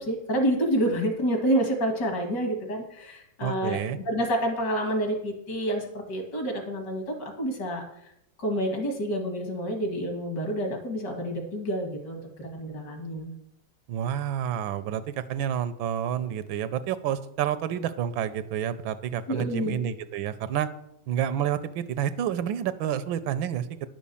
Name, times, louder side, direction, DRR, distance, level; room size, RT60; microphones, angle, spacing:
voice 1, 0.0-7.8 8.4-13.3 19.3-19.9, equal, 60° left, 3 dB, 2.8 m, -28 dB
voice 2, 3.4-4.0 13.9-20.7 21.1-23.7, right 9 dB, 90° right, 12 dB, 1.5 m, -29 dB
10.5 x 6.3 x 7.0 m, 0.80 s
omnidirectional pair, 2.1 m